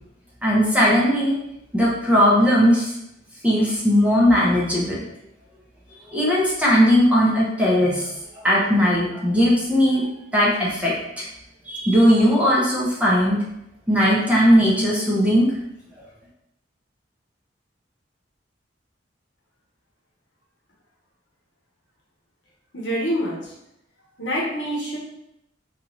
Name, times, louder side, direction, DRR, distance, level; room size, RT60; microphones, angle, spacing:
voice 1, 0.4-1.3 1.7-2.9 3.4-5.0 6.1-10.1 10.3-11.2 11.7-13.4 13.9-15.5, equal, 5° right, -6 dB, 0.6 m, -18 dB
voice 2, 22.7-23.4 24.2-25.0, equal, 75° left, -3 dB, 0.9 m, -25 dB
2.7 x 2.4 x 3.0 m, 0.81 s
head